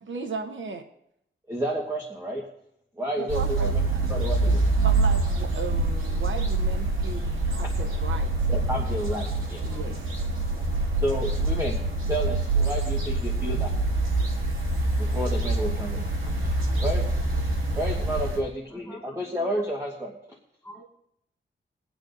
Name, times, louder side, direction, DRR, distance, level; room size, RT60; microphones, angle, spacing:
voice 1, 0.0-0.8 3.2-3.7 4.8-8.3 9.6-10.1, right 4 dB, 70° right, 5 dB, 0.9 m, -36 dB
voice 2, 1.5-2.4 3.0-4.7 8.5-9.7 11.0-11.8 12.1-13.7 15.0-16.0 16.4-17.0 17.7-20.1, equal, 15° right, 0 dB, 1.4 m, -31 dB
sound 1, 3.3-18.4, right 2 dB, 85° right, 2.6 m, -25 dB
voice 3, 18.7-19.6 20.6-20.8, equal, 5° left, -2 dB, 4.5 m, -46 dB
24.0 x 8.8 x 2.6 m, 0.77 s
wide cardioid pair, 130°, 21 cm